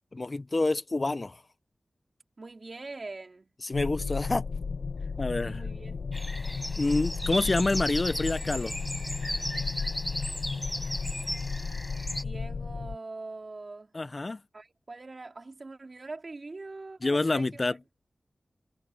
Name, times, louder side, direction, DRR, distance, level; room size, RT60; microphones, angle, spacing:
voice 1, 0.1-1.4 3.6-4.4 5.2-5.6 6.8-8.7 13.9-14.4 17.0-17.8, left 2 dB, 40° left, 0.6 m, -27 dB
voice 2, 2.4-3.5 5.4-6.0 12.2-13.9 14.5-17.6, right 3 dB, 45° right, 4.1 m, -43 dB
sound 1, 3.7-13.0, left 5 dB, 90° left, 1.1 m, -34 dB
sound 2, 6.1-12.2, equal, 5° left, 4.5 m, -36 dB
wide cardioid pair, 75°, 0 cm